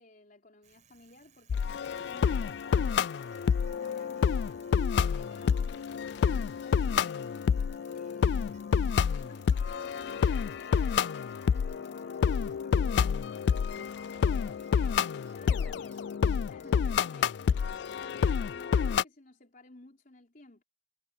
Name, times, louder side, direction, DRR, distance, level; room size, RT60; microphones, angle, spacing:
voice 1, 0.0-4.3 4.9-7.5 7.9-8.5 8.9-13.0 15.3-15.6 16.5-16.9 17.9-20.6, left 2 dB, 50° left, 4.2 m, -55 dB
Bicycle, 0.6-17.7, right 6 dB, 40° right, 6.4 m, -64 dB
sound 1, 1.5-19.0, left 6 dB, 65° left, 0.3 m, -28 dB
voice 2, 13.6-14.9 15.4-16.2 16.6-17.6, left 1 dB, 5° left, 6.5 m, -57 dB
head